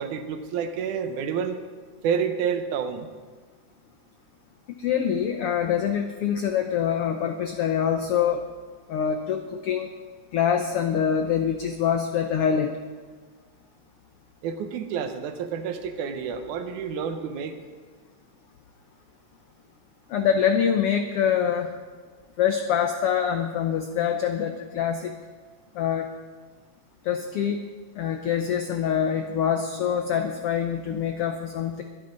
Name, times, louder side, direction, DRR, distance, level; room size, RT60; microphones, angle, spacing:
voice 1, 0.0-1.6 2.0-3.1 14.4-17.6, right 7 dB, 80° right, 7 dB, 2.4 m, -29 dB
voice 2, 4.8-8.4 8.9-9.9 10.3-12.8 20.1-21.7 22.4-25.1 25.7-26.1 27.0-27.6 28.0-31.8, left 8 dB, 90° left, 6 dB, 1.2 m, -25 dB
22.5 x 9.2 x 3.9 m, 1.5 s
omnidirectional pair, 3.5 m